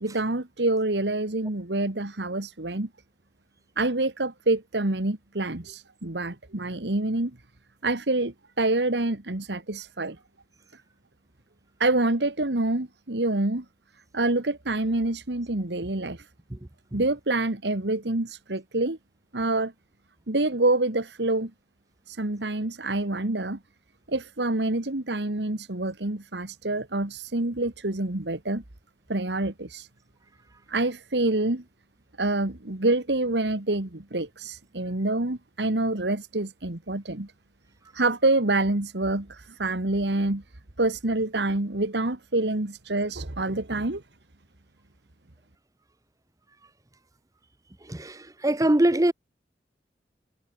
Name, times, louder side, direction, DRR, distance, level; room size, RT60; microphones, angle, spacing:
voice 1, 0.0-2.9 3.8-7.3 7.8-10.2 11.8-13.6 14.1-16.3 16.9-19.0 19.3-19.7 20.3-21.5 22.1-23.6 24.1-28.6 29.1-29.9 30.7-31.6 32.2-37.3 37.9-40.4 40.8-44.0, right 2 dB, 80° right, 1.9 m, -27 dB
voice 2, 48.4-49.1, right 1 dB, 20° right, 0.8 m, -21 dB
head